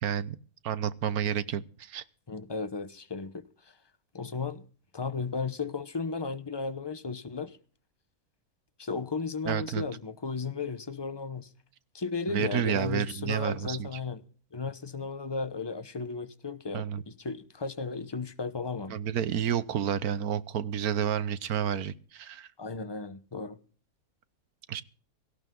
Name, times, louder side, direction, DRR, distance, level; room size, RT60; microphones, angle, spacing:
voice 1, 0.0-0.4 0.6-2.0 9.5-9.8 12.3-13.9 16.7-17.0 18.9-22.5 24.7-24.8, right 9 dB, 90° right, 1.4 m, -30 dB
voice 2, 2.3-3.4 4.1-4.6 4.9-7.6 8.8-11.5 11.9-14.2 14.5-18.9 22.6-23.6, left 4 dB, 25° left, 0.7 m, -35 dB
17.5 x 15.0 x 3.8 m
omnidirectional pair, 1.5 m